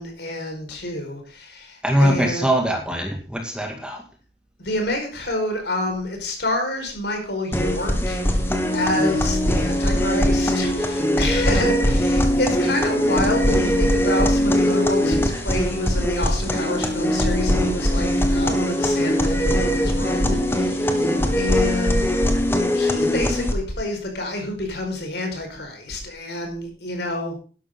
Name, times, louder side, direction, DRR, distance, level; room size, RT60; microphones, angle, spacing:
voice 1, 0.0-2.5 4.6-8.4 8.7-22.1 22.7-27.4, left 1 dB, 65° left, 3 dB, 4.9 m, -28 dB
voice 2, 1.8-4.0, equal, 5° right, 3 dB, 2.1 m, -22 dB
sound 1, 7.5-23.5, equal, 15° left, 1.6 m, -21 dB
12.0 x 12.0 x 3.8 m, 0.38 s
head